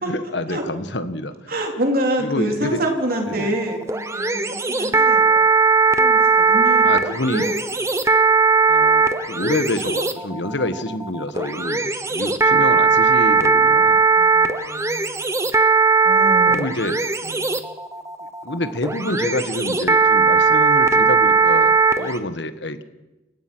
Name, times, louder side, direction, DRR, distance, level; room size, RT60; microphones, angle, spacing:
voice 1, 0.0-1.3 2.2-2.8 3.3-3.6 6.8-7.5 8.7-14.1 16.5-17.0 18.4-22.8, left 1 dB, 65° left, 11 dB, 1.5 m, -27 dB
voice 2, 1.5-5.5 6.0-7.0 7.3-7.5 7.9-8.0 14.1-15.4 16.0-16.7 17.2-17.5, right 1 dB, 50° right, 2 dB, 3.6 m, -27 dB
sound 1, 3.1-22.2, right 5 dB, 15° right, 1.0 m, -18 dB
29.0 x 15.5 x 6.2 m, 1.1 s
head